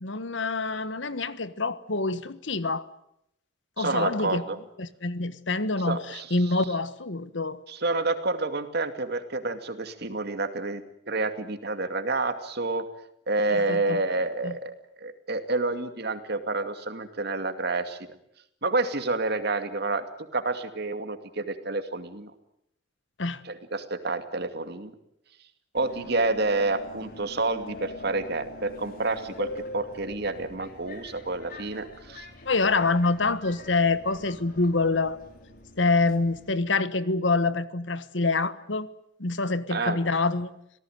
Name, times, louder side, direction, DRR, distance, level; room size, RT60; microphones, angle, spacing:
voice 1, 0.0-2.8 3.8-4.4 4.8-7.6 13.5-14.0 14.4-14.5 23.2-23.4 32.4-35.2 35.8-38.9 39.2-40.5, left 3 dB, 80° left, 14 dB, 1.5 m, -26 dB
voice 2, 3.8-4.6 5.9-6.6 7.7-12.9 13.3-14.7 15.0-18.0 18.6-20.0 20.3-22.3 23.4-24.9 25.7-32.3 39.7-40.0, right 3 dB, 60° right, 8 dB, 2.5 m, -29 dB
Subway metro underground, 25.7-36.5, left 2 dB, 50° left, 3.8 m, -45 dB
27.0 x 18.0 x 9.4 m, 0.75 s
head